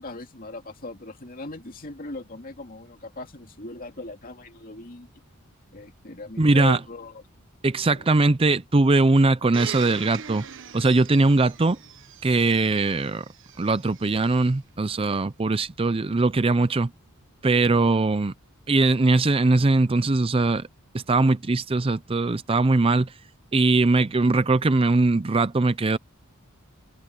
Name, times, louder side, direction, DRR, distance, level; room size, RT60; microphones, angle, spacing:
voice 1, 0.0-5.1 5.7-7.2 7.9-8.1, left 2 dB, 45° left, 2.5 m, -38 dB
voice 2, 6.4-6.8 7.6-10.4 10.7-11.8 12.2-13.2 13.6-16.9 17.4-18.3 18.7-20.7 20.9-23.1 23.5-26.0, right 3 dB, 25° right, 0.5 m, -21 dB
Domestic sounds home sounds, 9.5-14.4 15.1-15.2, right 7 dB, 60° right, 1.3 m, -41 dB
head